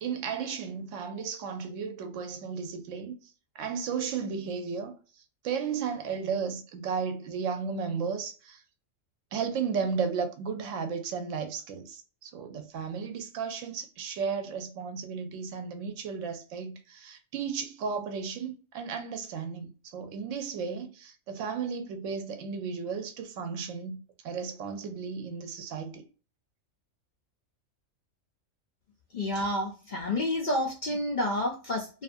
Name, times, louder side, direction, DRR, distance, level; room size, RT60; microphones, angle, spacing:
voice 1, 0.0-3.2 3.6-5.0 5.4-8.6 9.3-26.0, right 6 dB, 75° right, 0.9 m, -34 dB
voice 2, 29.1-32.0, left 1 dB, 70° left, 0.4 m, -29 dB
2.6 x 2.4 x 2.5 m
omnidirectional pair, 1.4 m